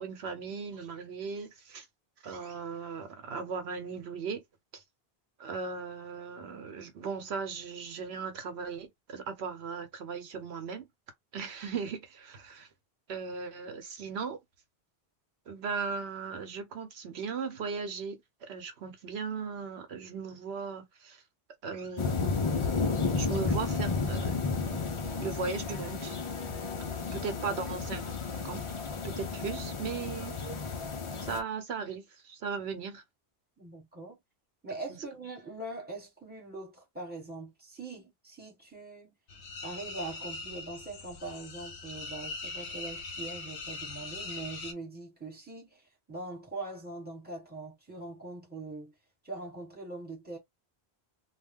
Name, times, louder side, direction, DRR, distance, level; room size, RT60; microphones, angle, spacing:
voice 1, 0.0-1.9 2.2-4.4 4.7-4.8 5.4-10.9 11.3-12.7 13.1-14.4 15.5-18.2 18.5-21.2 21.6-22.5 23.2-24.4 24.7-26.2 27.1-28.0 28.3-28.6 29.0-30.4 31.2-33.0 34.9-35.0, right 5 dB, 75° right, 1.0 m, -37 dB
sound 1, 22.0-31.4, left 4 dB, 45° left, 0.4 m, -32 dB
voice 2, 33.6-34.2 34.6-39.1 39.6-48.9 49.2-50.4, right 2 dB, 10° right, 1.2 m, -42 dB
sound 2, 39.3-44.7, left 3 dB, 80° left, 1.0 m, -41 dB
2.3 x 2.2 x 3.5 m
omnidirectional pair, 1.1 m